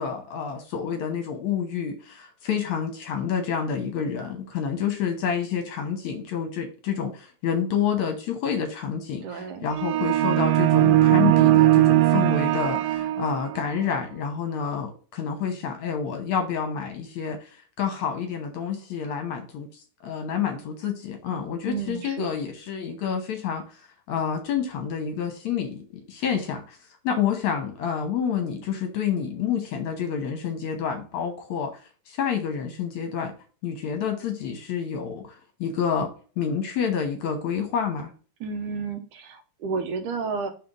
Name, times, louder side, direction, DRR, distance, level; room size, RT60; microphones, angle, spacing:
voice 1, 0.0-26.8 27.0-31.7 32.1-33.3 33.6-38.1, left 7 dB, 65° left, 4 dB, 2.0 m, -28 dB
voice 2, 9.2-9.7 21.6-22.3 38.4-40.5, right 5 dB, 70° right, 6 dB, 2.2 m, -31 dB
sound 1, 9.7-13.7, right 15 dB, 90° right, 2.4 m, -19 dB
5.9 x 4.2 x 5.2 m, 0.38 s
omnidirectional pair, 4.0 m